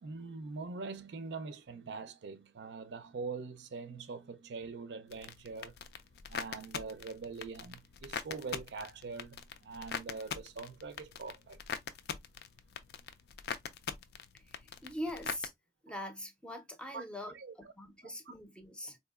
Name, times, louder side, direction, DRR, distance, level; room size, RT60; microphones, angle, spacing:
voice 1, 0.0-5.7 6.3-11.6 16.9-17.0 17.3-17.5 18.0-18.1, right 4 dB, 80° right, 0.5 m, -43 dB
sound 1, 5.1-15.5, left 7 dB, 60° left, 0.3 m, -43 dB
voice 2, 14.3-15.5 15.8-19.0, left 1 dB, 5° left, 0.5 m, -43 dB
3.8 x 2.7 x 2.3 m
head